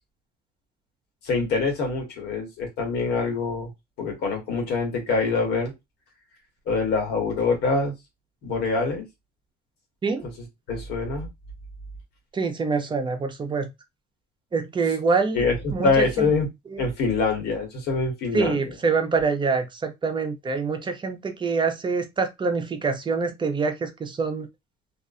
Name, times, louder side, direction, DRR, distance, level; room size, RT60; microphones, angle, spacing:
voice 1, 1.2-3.7 4.0-5.7 6.7-7.9 8.4-9.1 10.2-10.3 10.7-11.3 15.3-16.5 16.8-18.8, left 4 dB, 75° left, 1.3 m, -25 dB
voice 2, 12.3-13.7 14.5-15.4 15.7-16.1 16.7-16.8 18.3-24.5, right 4 dB, 30° right, 0.5 m, -25 dB
2.4 x 2.4 x 2.5 m
cardioid pair, 110°, 17 cm